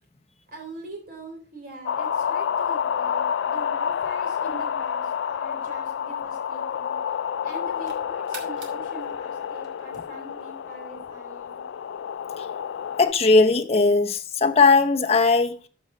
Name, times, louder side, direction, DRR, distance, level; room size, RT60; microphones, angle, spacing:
voice 1, 0.5-7.0 7.4-11.6, right 2 dB, 50° right, 3.6 m, -42 dB
sound 1, 1.9-13.1, left 8 dB, 90° left, 0.3 m, -29 dB
sound 2, 6.5-7.0 7.4-10.4, right 4 dB, 90° right, 2.8 m, -47 dB
voice 2, 13.0-15.6, left 3 dB, 35° left, 0.7 m, -18 dB
13.5 x 5.1 x 4.3 m
head